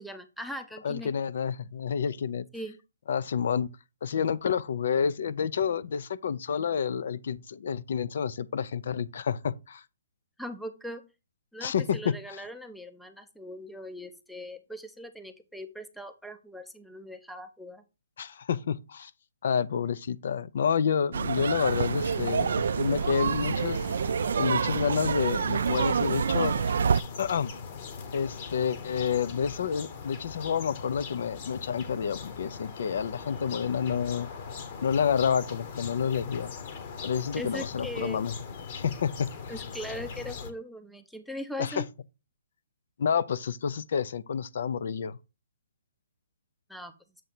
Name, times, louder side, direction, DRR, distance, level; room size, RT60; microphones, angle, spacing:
voice 1, 0.0-1.1 2.5-2.8 10.4-11.0 11.5-17.8 37.3-38.2 39.5-41.8 46.7-46.9, equal, ahead, 0.5 m, -40 dB
voice 2, 0.8-2.5 3.1-3.7 4.0-9.8 11.6-12.1 18.2-19.1 19.4-23.9 24.4-26.5 27.2-27.5 28.1-34.3 34.8-36.5 37.0-38.3 38.7-39.5 41.6-41.8 43.0-45.2, left 7 dB, 60° left, 0.4 m, -29 dB
sound 1, 21.1-27.0, right 6 dB, 70° right, 0.3 m, -27 dB
sound 2, 21.6-40.5, left 5 dB, 35° left, 1.0 m, -41 dB
7.6 x 2.7 x 5.9 m
hypercardioid pair, 160°, 0 cm